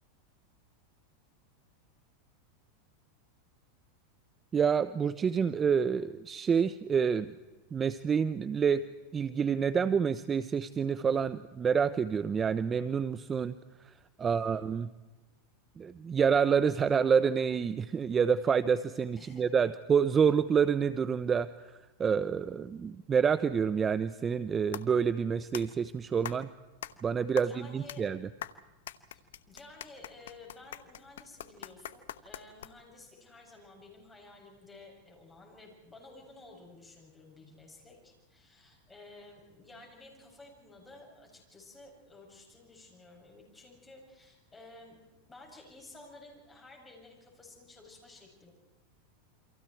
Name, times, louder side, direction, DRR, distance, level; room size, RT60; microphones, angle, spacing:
voice 1, 4.5-7.3 7.7-8.8 9.1-13.5 14.2-14.9 15.8-21.5 22.0-26.5 27.0-28.2, right 6 dB, 20° right, 15 dB, 0.7 m, -28 dB
voice 2, 14.2-14.7 19.2-19.5 27.3-28.1 29.1-29.2 29.5-48.5, left 2 dB, 10° left, 0 dB, 7.3 m, -53 dB
sound 1, 24.7-33.0, left 11 dB, 85° left, 1.1 m, -45 dB
29.0 x 24.5 x 4.6 m, 1.2 s
supercardioid pair, 125°, 0 cm